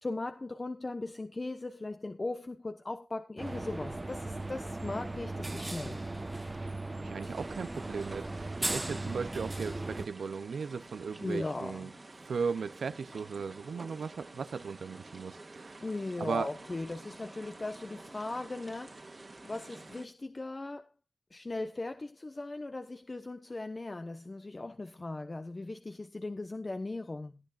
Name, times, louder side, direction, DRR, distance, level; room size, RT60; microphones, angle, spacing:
voice 1, 0.0-6.0 11.2-11.9 15.8-20.9 21.3-27.4, left 2 dB, 40° left, 1.0 m, -38 dB
sound 1, 3.4-10.1, right 2 dB, 30° right, 1.1 m, -37 dB
voice 2, 7.0-11.9 12.2-15.8 16.2-16.5, right 5 dB, 90° right, 0.6 m, -37 dB
sound 2, 7.3-20.1, right 2 dB, 45° right, 1.8 m, -50 dB
18.5 x 10.5 x 2.5 m
cardioid pair, 40°, 0 cm